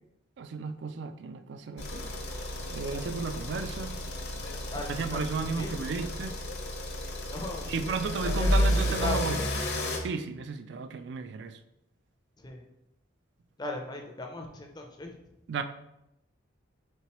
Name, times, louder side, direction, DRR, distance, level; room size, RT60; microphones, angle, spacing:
voice 1, 0.4-2.1 2.7-4.0 4.9-6.4 7.7-9.4 10.0-11.6 15.5-15.6, right 5 dB, 55° right, 10 dB, 0.3 m, -34 dB
sound 1, 1.8-10.0, left 1 dB, 55° left, 0.7 m, -31 dB
voice 2, 4.7-5.8 7.3-7.7 8.2-9.3 12.4-12.6 13.6-15.1, left 2 dB, 20° left, 3 dB, 0.5 m, -38 dB
4.4 x 3.7 x 2.9 m, 0.86 s
head